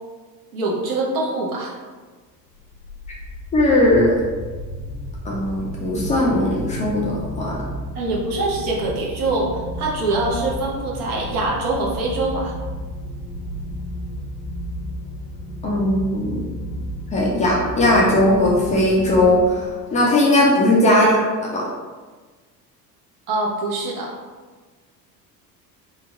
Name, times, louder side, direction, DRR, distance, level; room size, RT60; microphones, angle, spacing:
voice 1, 0.5-1.7 7.9-12.5 20.8-21.0 23.3-24.2, right 2 dB, 60° right, -3 dB, 0.9 m, -24 dB
sound 1, 2.5-19.9, equal, 70° left, 0.7 m, -32 dB
voice 2, 3.5-4.1 5.2-7.6 15.6-16.4 17.1-19.7 19.9-21.1 21.5-21.7, left 1 dB, 15° left, -4 dB, 0.3 m, -18 dB
2.8 x 2.1 x 3.5 m, 1.4 s
figure-of-eight pair, 65°, 50 cm